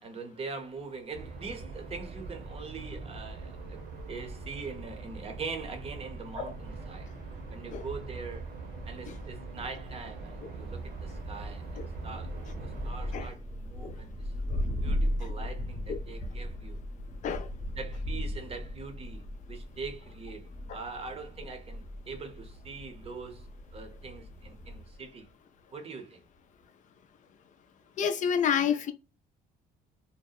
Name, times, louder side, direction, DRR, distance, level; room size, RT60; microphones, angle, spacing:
voice 1, 0.0-3.8 4.1-7.1 7.5-8.4 8.9-14.1 14.8-16.8 17.8-19.2 19.5-23.5 23.7-25.3 25.7-26.2, right 4 dB, 35° right, 0.7 m, -42 dB
sound 1, 1.1-13.3, right 3 dB, 70° right, 0.8 m, -42 dB
Thunder, 10.5-25.1, equal, 15° left, 0.9 m, -37 dB
voice 2, 28.0-28.9, left 8 dB, 50° left, 0.4 m, -29 dB
2.8 x 2.0 x 2.3 m
cardioid pair, 110°, 17 cm